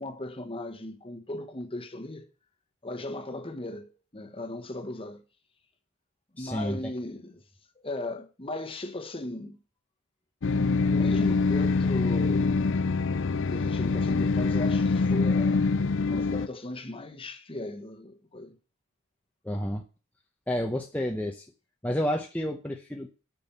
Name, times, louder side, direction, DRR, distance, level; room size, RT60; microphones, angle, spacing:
voice 1, 0.0-2.3 2.8-5.2 6.4-7.4 7.8-9.6 10.4-12.6 13.4-15.6 16.0-18.6, left 1 dB, 25° left, 1.2 m, -37 dB
voice 2, 6.4-6.8 19.4-19.8 20.5-21.4 21.8-23.1, equal, 5° left, 0.7 m, -30 dB
sound 1, 10.4-16.5, left 4 dB, 55° left, 0.5 m, -25 dB
8.8 x 6.2 x 7.2 m
head